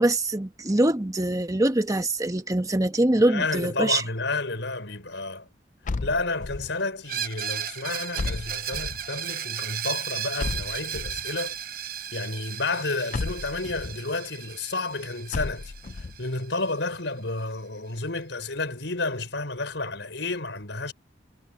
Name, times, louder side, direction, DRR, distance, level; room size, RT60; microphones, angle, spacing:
voice 1, 0.0-4.0, right 1 dB, 20° right, 1.2 m, -23 dB
voice 2, 3.2-5.5 6.0-11.5 12.1-15.7 16.2-20.9, left 3 dB, 75° left, 5.0 m, -31 dB
sound 1, 5.8-6.8 8.2-9.1 10.4-11.3 13.1-14.0 15.3-16.2, left 3 dB, 45° left, 0.5 m, -33 dB
Screech, 7.1-16.7, right 9 dB, 50° right, 1.0 m, -35 dB
head